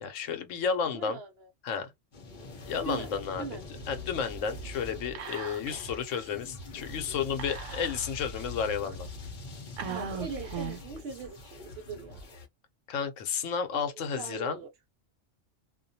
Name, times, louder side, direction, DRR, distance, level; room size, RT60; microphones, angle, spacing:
voice 1, 0.0-1.2 1.6-1.9 2.6-3.5 3.9-9.1 12.9-14.6, left 6 dB, 85° left, 1.0 m, -32 dB
voice 2, 0.9-1.5 2.8-3.6 9.9-12.4 13.7-14.7, right 5 dB, 65° right, 0.7 m, -41 dB
sound 1, 2.1-12.5, left 3 dB, 45° left, 0.7 m, -43 dB
Whispering, 5.1-5.9 6.1-6.2 7.4-8.2 8.9-9.0 9.8-11.0, right 7 dB, 85° right, 1.0 m, -38 dB
2.3 x 2.2 x 2.6 m
omnidirectional pair, 1.3 m